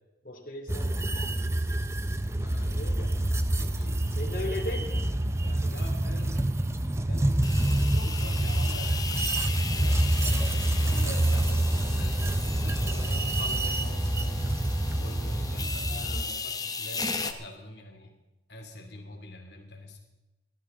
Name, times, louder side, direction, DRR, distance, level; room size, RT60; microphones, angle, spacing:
voice 1, 0.2-1.3 2.5-3.2 4.1-5.1 5.4-5.8 15.9-16.4, left 1 dB, 50° left, 1 dB, 2.9 m, -39 dB
sound 1, 0.7-16.2, right 1 dB, 15° right, 0.5 m, -27 dB
voice 2, 2.4-3.0 3.6-4.0 5.6-6.6 6.9-9.0 9.4-14.4 15.0-18.1 18.5-20.0, left 1 dB, 70° left, 3 dB, 2.8 m, -44 dB
sound 2, 7.4-17.3, left 4 dB, 20° left, 0.9 m, -36 dB
20.0 x 13.0 x 3.9 m, 1.0 s
head